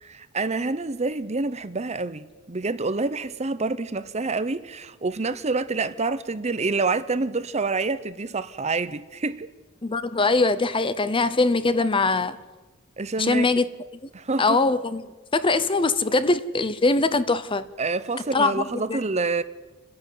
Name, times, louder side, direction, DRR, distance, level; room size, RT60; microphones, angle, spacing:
voice 1, 0.0-9.5 13.0-13.5 14.1-14.6 17.8-19.4, right 3 dB, 30° right, 0.8 m, -27 dB
voice 2, 9.8-12.4 13.2-13.7 14.0-14.1 14.4-15.0 15.3-17.7 18.3-19.0, left 3 dB, 25° left, 0.7 m, -22 dB
29.5 x 10.5 x 9.3 m
head